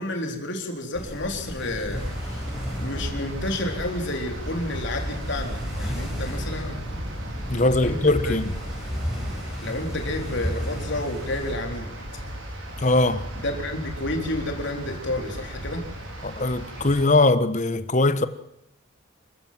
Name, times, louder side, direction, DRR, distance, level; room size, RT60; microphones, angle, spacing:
voice 1, 0.0-2.4 2.8-6.8 7.8-8.4 9.6-11.9 13.4-15.8, left 1 dB, 55° left, 4.0 m, -30 dB
sound 1, 0.9-11.5, equal, 5° right, 5.7 m, -34 dB
sound 2, 1.9-17.0, equal, 65° right, 4.9 m, -35 dB
voice 2, 7.5-8.4 12.8-13.3 16.2-18.3, left 2 dB, 35° left, 1.3 m, -21 dB
27.0 x 15.0 x 7.6 m
head